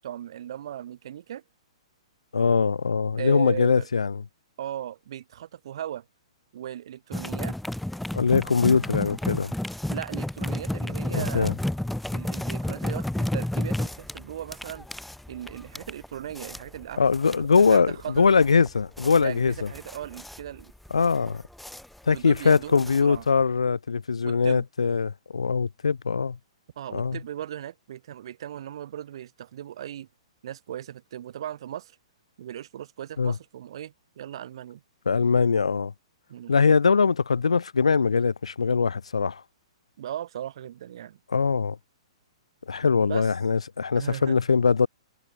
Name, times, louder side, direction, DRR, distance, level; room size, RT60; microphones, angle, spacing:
voice 1, 0.0-1.4 3.2-3.9 4.6-6.0 6.5-7.6 9.9-11.6 12.1-14.9 15.3-18.3 19.2-20.7 22.1-23.3 24.2-24.6 26.8-30.1 30.4-32.0 32.4-34.8 36.3-36.6 40.0-41.2 43.0-43.3 43.9-44.4, right 11 dB, 55° right, 2.2 m, -37 dB
voice 2, 2.3-4.2 8.1-9.5 11.1-11.5 17.0-19.7 20.9-21.4 22.1-26.4 26.9-27.2 33.2-33.3 35.1-35.9 36.5-39.4 41.3-41.8 42.7-44.9, left 5 dB, 80° left, 0.5 m, -22 dB
sound 1, 7.1-23.4, left 1 dB, ahead, 1.3 m, -32 dB
figure-of-eight pair, 115°, 3 cm